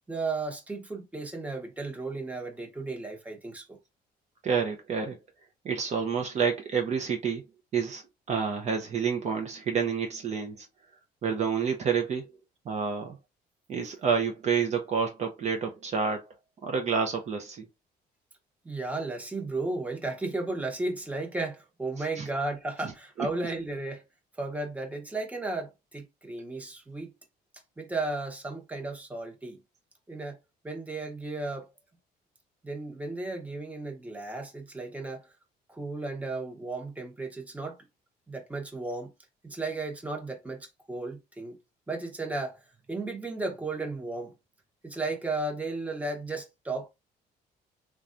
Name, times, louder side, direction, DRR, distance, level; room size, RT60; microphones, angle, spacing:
voice 1, 0.1-3.8 18.6-24.0 24.4-27.1 27.8-29.6 30.1-30.4 30.6-31.7 32.6-35.3 35.7-37.8 38.3-39.1 39.4-41.6 41.9-42.6 42.9-44.4 44.8-46.9, right 2 dB, 10° right, 0.9 m, -34 dB
voice 2, 4.4-5.2 5.6-7.4 7.7-8.0 8.3-10.7 11.2-12.2 12.7-13.2 13.7-16.3 16.6-17.6 22.0-22.3 22.8-23.4, right 6 dB, 40° right, 0.6 m, -29 dB
3.2 x 2.3 x 2.5 m
cardioid pair, 110°, 17 cm